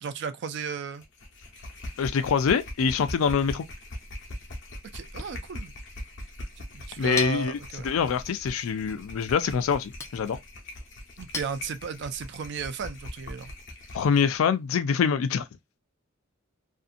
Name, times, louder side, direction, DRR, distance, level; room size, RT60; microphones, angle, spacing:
voice 1, 0.0-1.0 4.9-5.7 6.6-7.9 11.2-13.5, right 6 dB, 60° right, 0.4 m, -35 dB
sound 1, 1.0-14.4, left 1 dB, 60° left, 0.9 m, -41 dB
voice 2, 2.0-3.6 7.0-7.6 7.8-10.4 13.9-15.4, left 6 dB, 90° left, 0.4 m, -25 dB
Chink clink, 6.5-12.2, left 4 dB, 15° left, 0.4 m, -42 dB
2.6 x 2.5 x 2.4 m
head